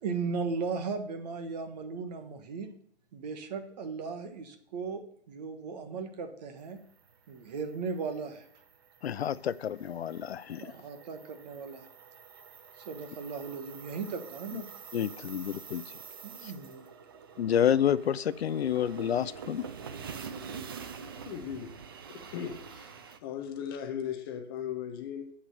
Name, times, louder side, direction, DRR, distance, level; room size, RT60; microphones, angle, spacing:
voice 1, 0.0-2.7 3.1-6.8 7.3-8.4 10.6-11.9 12.8-14.7 16.2-16.9, right 5 dB, 35° right, 1.5 m, -37 dB
sound 1, 6.7-23.2, right 6 dB, 20° right, 0.4 m, -47 dB
voice 2, 9.0-10.7 14.5-14.6 14.9-16.0 16.4-16.5 17.4-19.6, left 9 dB, 65° left, 0.5 m, -29 dB
voice 3, 21.2-21.7 22.1-22.9 23.2-25.3, left 9 dB, 20° left, 0.7 m, -37 dB
8.2 x 6.0 x 6.8 m
hypercardioid pair, 145°, 34 cm